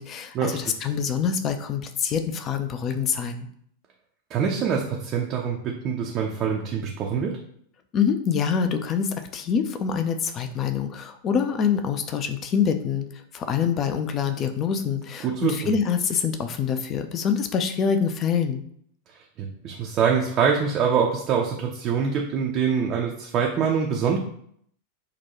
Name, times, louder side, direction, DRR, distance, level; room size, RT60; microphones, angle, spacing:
voice 1, 0.0-3.5 7.9-18.6, left 7 dB, 30° left, 7 dB, 0.4 m, -25 dB
voice 2, 4.3-7.4 15.2-15.7 19.4-24.2, right 6 dB, 35° right, 0 dB, 0.4 m, -24 dB
3.8 x 2.2 x 2.9 m, 0.66 s
figure-of-eight pair, 90°, 0 cm